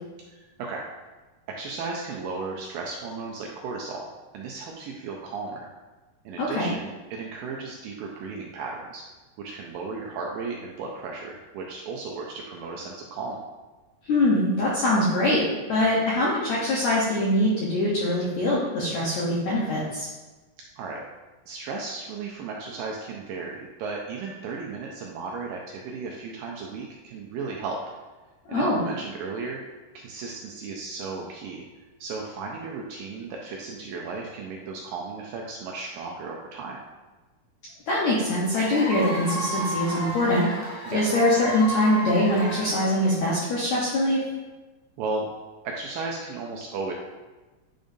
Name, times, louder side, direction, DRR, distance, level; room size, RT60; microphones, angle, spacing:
voice 1, 0.3-0.8 1.5-4.1 4.3-5.7 6.3-9.0 9.4-13.4 20.8-21.1 21.5-27.8 28.5-29.6 29.9-31.7 32.0-36.8 40.9-41.1 45.0-45.3 45.6-46.9, right 4 dB, 80° right, -1 dB, 2.0 m, -35 dB
voice 2, 6.4-6.7 14.0-20.1 28.5-28.8 37.9-44.2, left 1 dB, 75° left, -6 dB, 1.6 m, -23 dB
Cheering / Applause / Crowd, 38.5-43.2, equal, 50° left, 1.1 m, -33 dB
10.0 x 5.1 x 2.6 m, 1.2 s
omnidirectional pair, 4.6 m